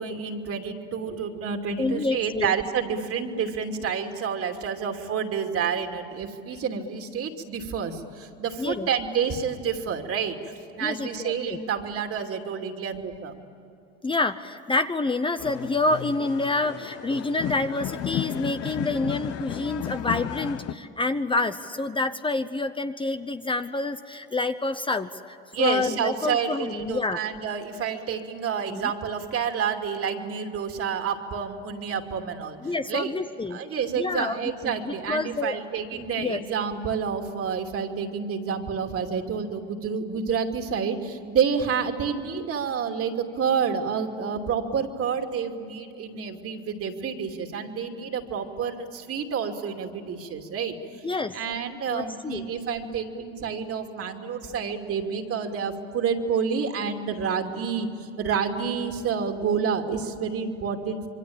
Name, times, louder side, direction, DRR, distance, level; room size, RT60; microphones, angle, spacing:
voice 1, 0.0-13.3 25.5-32.6 32.9-33.1 33.5-50.7 51.3-61.1, right 6 dB, 45° right, 4 dB, 2.9 m, -29 dB
voice 2, 1.8-2.5 8.6-8.9 10.8-11.6 14.0-27.2 28.7-28.9 32.6-33.6 34.0-35.6 36.2-36.4 51.0-51.4 51.9-52.5, left 3 dB, 15° left, 9 dB, 0.9 m, -28 dB
sound 1, 15.4-20.7, left 11 dB, 55° left, 1.1 m, -33 dB
27.0 x 23.5 x 8.9 m, 2.6 s
hypercardioid pair, 80°, 31 cm